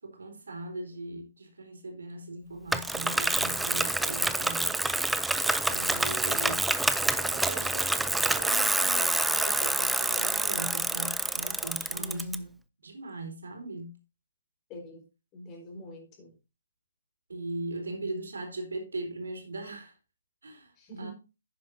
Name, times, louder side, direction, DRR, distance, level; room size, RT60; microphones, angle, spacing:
voice 1, 0.0-4.7 5.7-6.7 7.2-12.3 12.8-13.9 17.3-19.9 20.4-20.7 21.0-21.1, right 2 dB, 70° right, 4.1 m, -39 dB
Bicycle, 2.7-12.3, right 2 dB, 5° right, 0.5 m, -27 dB
voice 2, 11.9-12.5 14.7-15.0 15.3-16.3 20.8-21.1, equal, 25° left, 4.7 m, -42 dB
11.0 x 9.6 x 2.7 m
figure-of-eight pair, 135°, 0 cm